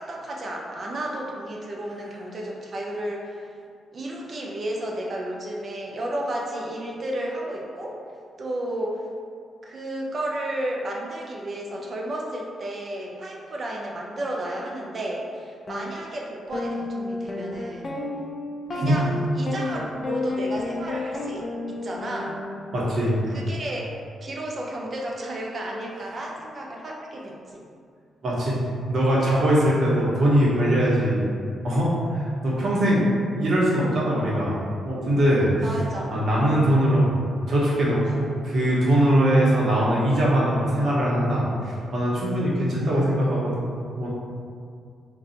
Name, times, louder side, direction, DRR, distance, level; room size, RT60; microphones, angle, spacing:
voice 1, 0.0-3.5 3.9-8.0 8.4-9.0 9.6-18.0 18.7-22.4 23.3-23.9 24.2-27.6 35.6-36.4, right 1 dB, 40° right, -2 dB, 0.5 m, -32 dB
sound 1, 15.7-15.8 16.5-22.9, left 2 dB, 40° left, 0.4 m, -31 dB
voice 2, 22.7-23.2 28.2-28.6 28.9-31.2 31.6-34.6 34.8-35.5 36.1-37.2 37.5-43.6 44.0-44.1, equal, 55° right, -6 dB, 0.9 m, -21 dB
2.5 x 2.3 x 3.9 m, 2.3 s
cardioid pair, 110°, 0 cm